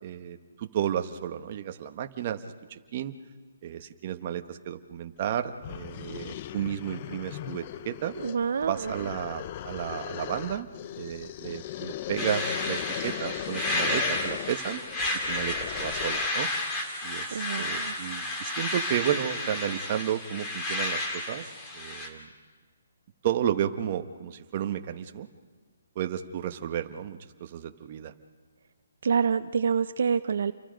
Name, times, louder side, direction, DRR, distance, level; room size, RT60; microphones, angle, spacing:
voice 1, 0.0-2.4 2.7-3.2 3.6-8.1 8.7-10.7 11.0-14.8 15.3-16.5 17.0-22.3 23.2-25.3 25.9-28.1, right 10 dB, 35° right, 6 dB, 1.1 m, -32 dB
sound 1, 5.2-5.3 5.6-16.4, left 12 dB, 30° left, 0.6 m, -38 dB
voice 2, 8.2-8.9 17.3-17.9 29.0-30.5, right 6 dB, 60° right, 11 dB, 0.6 m, -27 dB
sound 2, 12.2-22.1, left 2 dB, 15° left, 2.5 m, -32 dB
29.0 x 24.0 x 5.2 m, 1.5 s
hypercardioid pair, 165°, 0 cm